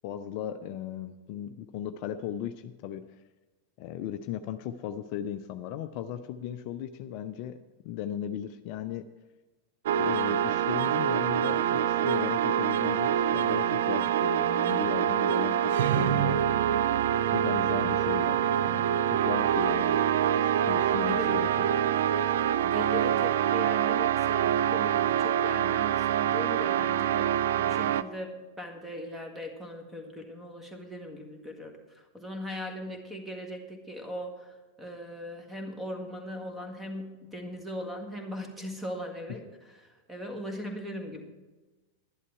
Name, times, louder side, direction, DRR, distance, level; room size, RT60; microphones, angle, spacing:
voice 1, 0.0-3.0 3.8-7.6 7.8-9.1 10.0-16.4 17.3-20.0 20.4-21.7, left 10 dB, 45° left, 10 dB, 0.5 m, -36 dB
sound 1, 9.9-28.0, right 10 dB, 55° right, 0.4 m, -25 dB
voice 2, 22.6-41.2, left 1 dB, 10° right, 4 dB, 1.7 m, -39 dB
11.5 x 11.0 x 4.6 m, 1.2 s
figure-of-eight pair, 90°, 0 cm